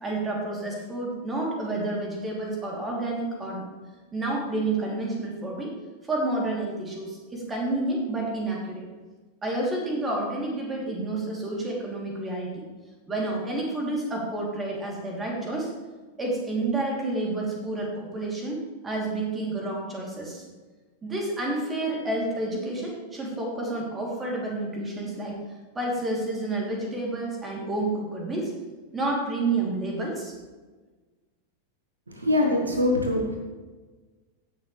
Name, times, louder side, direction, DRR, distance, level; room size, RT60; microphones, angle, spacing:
voice 1, 0.0-3.6 4.1-5.7 6.0-8.8 9.4-12.6 13.1-15.7 16.2-18.6 18.8-20.4 21.0-25.4 25.7-28.5 28.9-30.3, right 2 dB, 15° right, -2 dB, 3.1 m, -29 dB
voice 2, 32.1-33.4, left 2 dB, 80° right, 2 dB, 1.4 m, -23 dB
17.0 x 6.7 x 3.3 m, 1.3 s
figure-of-eight pair, 90°, 0 cm